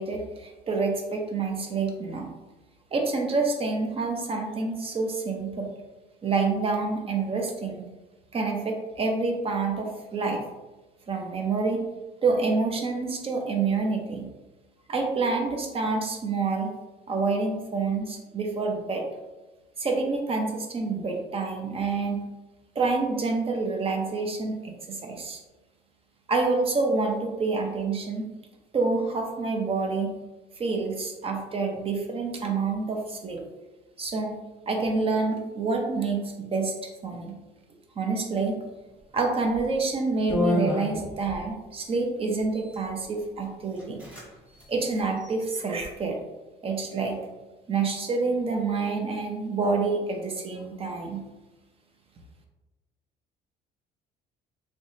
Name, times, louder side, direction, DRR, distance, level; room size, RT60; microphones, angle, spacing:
voice 1, 0.0-2.3 2.9-5.7 6.2-7.9 8.3-10.4 11.1-11.8 12.2-14.3 14.9-16.7 17.1-19.0 19.8-22.2 22.8-25.4 26.3-28.3 28.7-30.1 30.6-33.4 34.0-34.3 34.7-36.7 37.0-37.4 38.0-38.6 39.1-44.0 44.7-46.2 46.6-47.2 47.7-51.2, right 4 dB, 35° right, 2 dB, 0.7 m, -27 dB
sound 1, 39.5-39.7 40.3-41.4 42.4-42.8 43.4-43.5 43.8-44.3 44.5-44.7 45.2-45.9, left 2 dB, 10° right, 1.3 m, -30 dB
3.4 x 3.1 x 2.7 m, 1.1 s
cardioid pair, 110°, 17 cm